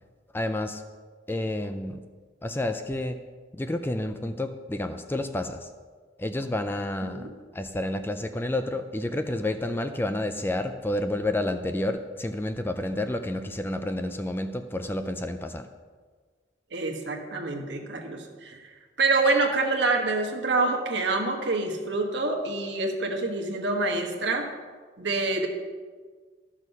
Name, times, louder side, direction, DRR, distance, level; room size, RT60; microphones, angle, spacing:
voice 1, 0.3-0.8 1.3-2.0 2.4-3.2 3.5-5.7 6.2-15.7, left 1 dB, 10° left, 8 dB, 0.4 m, -30 dB
voice 2, 16.7-18.6 19.0-24.5 25.0-25.5, right 3 dB, 65° right, 2 dB, 1.3 m, -26 dB
12.5 x 6.3 x 5.4 m, 1.5 s
head